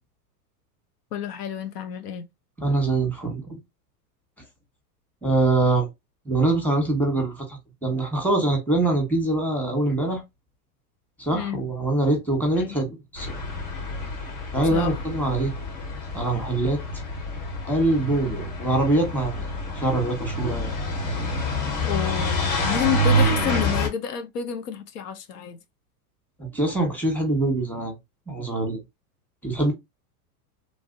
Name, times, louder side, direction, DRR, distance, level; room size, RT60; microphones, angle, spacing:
voice 1, 1.1-2.2 11.3-11.7 12.6-12.8 14.7-15.0 21.8-25.6, left 9 dB, 80° left, 0.8 m, -30 dB
voice 2, 2.6-3.6 5.2-5.9 6.2-10.2 11.2-13.3 14.5-15.5 16.1-16.8 17.7-19.5 19.7-20.7 26.4-27.9 28.3-28.8 29.4-29.7, right 2 dB, 5° left, 1.3 m, -24 dB
sound 1, 13.1-23.9, equal, 60° left, 1.9 m, -27 dB
3.3 x 2.6 x 2.6 m
hypercardioid pair, 115°, 46 cm